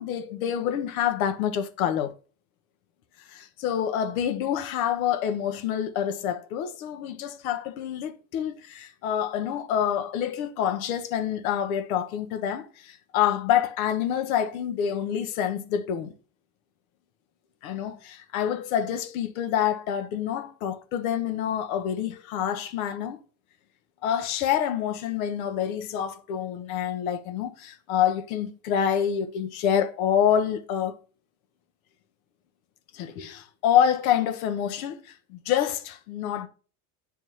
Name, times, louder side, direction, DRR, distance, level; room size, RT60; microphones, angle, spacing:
voice 1, 0.0-2.1 3.3-16.1 17.6-23.2 24.0-31.0 32.9-36.5, left 9 dB, 90° left, 1.0 m, -27 dB
9.3 x 3.5 x 2.9 m
supercardioid pair, 120°, 41 cm